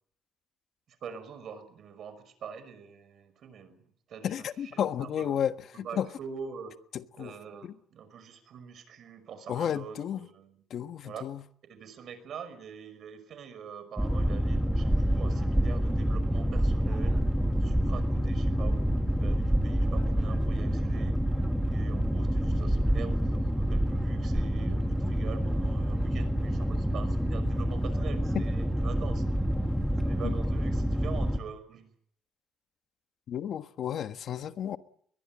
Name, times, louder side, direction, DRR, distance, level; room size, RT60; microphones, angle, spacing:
voice 1, 0.9-5.4 5.7-6.8 7.2-10.5 11.0-11.2 11.7-17.3 17.6-21.2 21.7-29.2 30.0-31.9, right 6 dB, 65° right, 5.8 m, -44 dB
voice 2, 4.2-6.1 6.9-7.3 7.6-7.7 9.5-10.3 10.7-11.4 28.3-28.4 30.2-30.3 33.3-34.8, left 9 dB, 70° left, 1.4 m, -32 dB
Boat Water vehicle, 14.0-31.4, equal, 5° right, 2.6 m, -27 dB
22.0 x 20.5 x 8.8 m
cardioid pair, 90°, 0 cm